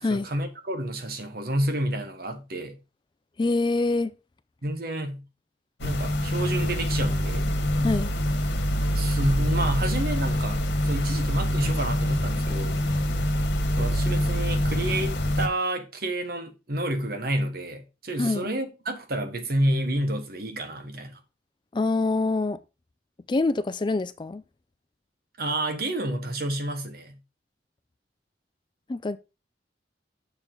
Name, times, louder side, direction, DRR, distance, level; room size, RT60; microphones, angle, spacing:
voice 1, 0.1-2.8 4.6-5.2 5.8-7.6 8.9-12.8 13.8-21.2 25.4-27.2, right 1 dB, 55° right, 1.3 m, -29 dB
voice 2, 3.4-4.1 7.8-8.1 18.2-18.5 21.7-22.6 23.3-24.4 28.9-29.2, left 3 dB, 25° left, 0.4 m, -25 dB
sound 1, 5.8-15.5, equal, 70° left, 1.6 m, -25 dB
7.0 x 6.9 x 3.8 m
head